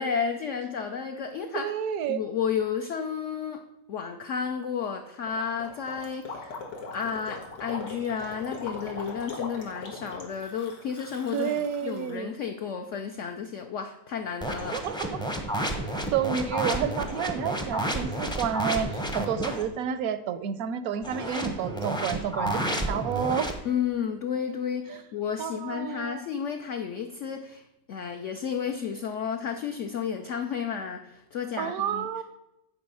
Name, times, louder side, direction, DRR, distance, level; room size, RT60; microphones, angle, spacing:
voice 1, 0.0-1.7 2.1-6.6 6.9-14.8 23.6-32.1, left 7 dB, 65° left, 4 dB, 0.7 m, -32 dB
voice 2, 1.5-2.2 11.3-12.3 14.7-15.2 16.1-23.5 24.9-25.0 25.4-26.2 31.6-32.2, right 8 dB, 70° right, 13 dB, 0.9 m, -30 dB
Gurgling, 5.3-12.2, left 3 dB, 85° left, 2.1 m, -40 dB
sound 1, 14.4-19.6 21.0-23.5, right 1 dB, 5° left, 0.4 m, -31 dB
9.5 x 4.7 x 5.5 m, 0.90 s
omnidirectional pair, 1.9 m